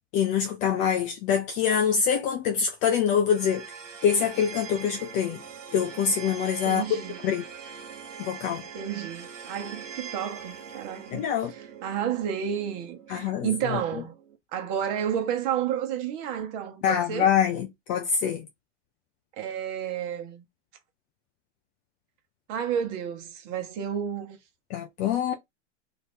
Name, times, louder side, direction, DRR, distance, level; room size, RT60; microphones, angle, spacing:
voice 1, 0.1-3.7 4.0-5.4 5.7-7.4 8.2-8.6 11.1-11.5 13.1-13.8 16.8-18.5 24.7-25.3, left 8 dB, 20° left, 0.3 m, -25 dB
sound 1, 3.3-14.4, right 6 dB, 80° right, 1.1 m, -43 dB
voice 2, 6.6-7.2 8.7-14.1 14.5-17.3 19.4-20.4 22.5-24.4, right 9 dB, 40° right, 1.0 m, -31 dB
2.7 x 2.6 x 3.5 m
hypercardioid pair, 110°, 36 cm